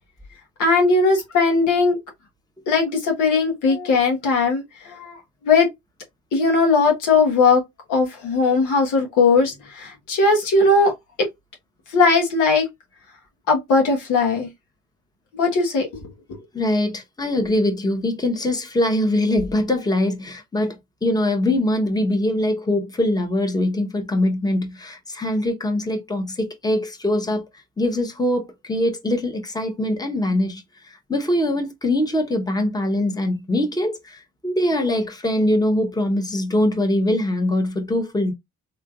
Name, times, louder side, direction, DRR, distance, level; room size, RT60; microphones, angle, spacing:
voice 1, 0.6-2.0 2.7-5.2 5.4-5.7 6.3-7.6 7.9-10.9 11.2-11.3 11.9-12.7 13.5-14.5 15.3-16.0 16.3-16.4, left 3 dB, 85° left, 1.3 m, -18 dB
voice 2, 16.5-20.7 21.0-27.4 27.8-38.3, left 1 dB, 15° left, 1.0 m, -22 dB
3.3 x 2.9 x 2.4 m
cardioid pair, 90°, 30 cm